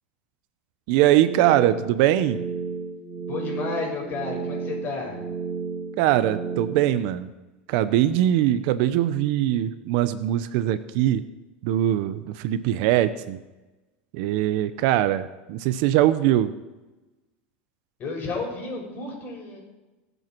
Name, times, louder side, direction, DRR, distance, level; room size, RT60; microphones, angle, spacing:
voice 1, 0.9-2.4 6.0-7.3 7.7-11.2 11.6-13.4 14.1-16.5, right 12 dB, 60° right, 13 dB, 0.8 m, -22 dB
sound 1, 1.3-6.9, right 5 dB, 30° right, 4.8 m, -32 dB
voice 2, 3.3-5.2 18.0-19.6, left 4 dB, 35° left, 0 dB, 5.9 m, -32 dB
22.5 x 8.1 x 4.6 m, 1.1 s
supercardioid pair, 130°, 6 cm